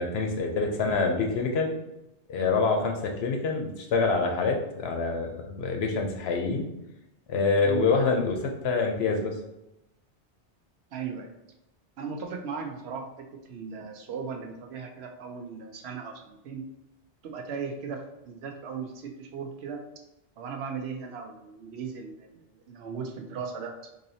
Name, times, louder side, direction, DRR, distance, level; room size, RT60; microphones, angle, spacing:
voice 1, 0.0-1.7 2.3-6.7 7.3-8.4 8.6-9.3, left 4 dB, 70° left, 3 dB, 0.8 m, -26 dB
voice 2, 10.9-11.3 12.0-16.6 17.2-18.0 18.2-19.8 20.4-23.7, right 6 dB, 70° right, 3 dB, 0.8 m, -37 dB
4.0 x 2.7 x 2.7 m, 0.88 s
omnidirectional pair, 1.1 m